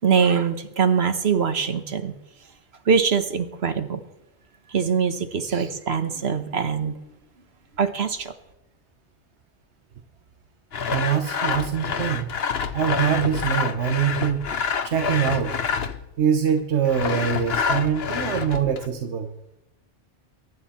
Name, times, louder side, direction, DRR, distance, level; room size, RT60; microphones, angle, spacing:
voice 1, 0.0-2.1 2.9-4.0 4.7-7.2 7.8-8.3, right 6 dB, 70° right, 9 dB, 1.5 m, -23 dB
Sawing, 10.7-16.1 16.9-18.9, left 6 dB, 65° left, 1.2 m, -27 dB
voice 2, 10.9-12.3 12.7-14.5 14.8-15.6 16.2-19.3, right 8 dB, 85° right, 6 dB, 1.3 m, -24 dB
23.0 x 11.5 x 4.3 m, 0.92 s
omnidirectional pair, 1.1 m